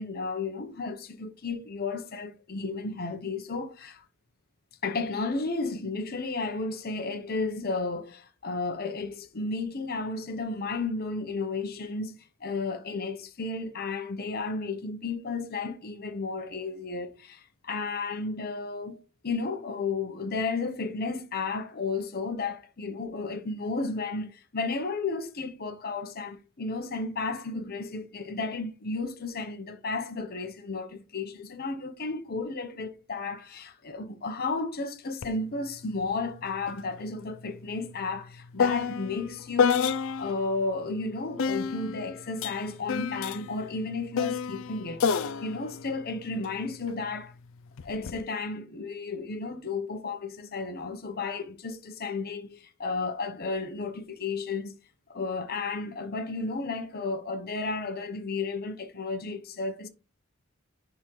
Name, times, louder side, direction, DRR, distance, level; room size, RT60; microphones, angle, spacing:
voice 1, 0.0-4.0 4.8-47.3 47.8-54.7 55.1-59.9, left 3 dB, 45° left, 0.8 m, -33 dB
sound 1, 35.2-35.4 35.7-40.5 41.4-46.9 47.8-48.2, left 6 dB, 65° left, 0.4 m, -30 dB
10.0 x 3.7 x 3.1 m
head